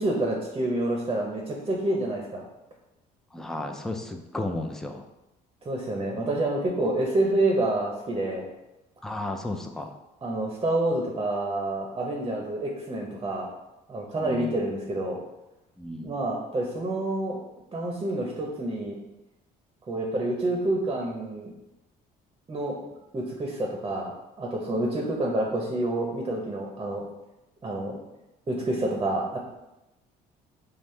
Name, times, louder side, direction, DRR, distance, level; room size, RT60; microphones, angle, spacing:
voice 1, 0.0-2.4 5.6-8.5 10.2-13.5 13.9-15.2 16.0-17.4 17.7-19.0 19.9-21.5 22.5-22.8 23.1-24.1 24.4-27.0 27.6-28.0 28.5-29.4, right 1 dB, 25° right, -1 dB, 0.7 m, -28 dB
voice 2, 3.3-5.1 9.0-9.9 14.2-14.6 15.8-16.1 25.0-25.1, left 1 dB, 5° left, 4 dB, 0.3 m, -33 dB
5.3 x 2.0 x 3.2 m, 0.94 s
cardioid pair, 110°, 17 cm